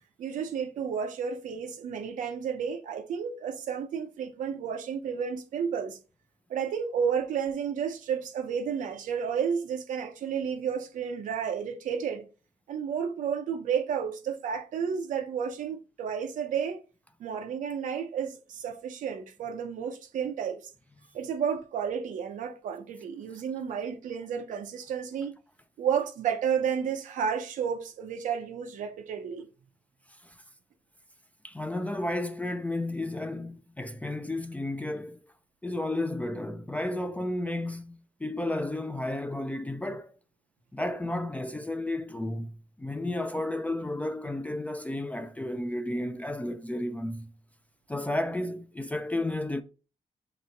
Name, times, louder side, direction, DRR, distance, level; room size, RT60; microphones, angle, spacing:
voice 1, 0.2-6.0 6.5-12.2 12.7-16.8 17.2-20.7 21.1-25.3 25.8-29.5, right 7 dB, 90° right, 0.6 m, -31 dB
voice 2, 31.4-35.2 35.6-40.1 40.7-42.5 42.8-47.3 47.9-49.6, left 1 dB, 10° left, 0.4 m, -32 dB
3.3 x 3.0 x 3.9 m
cardioid pair, 80°, 13 cm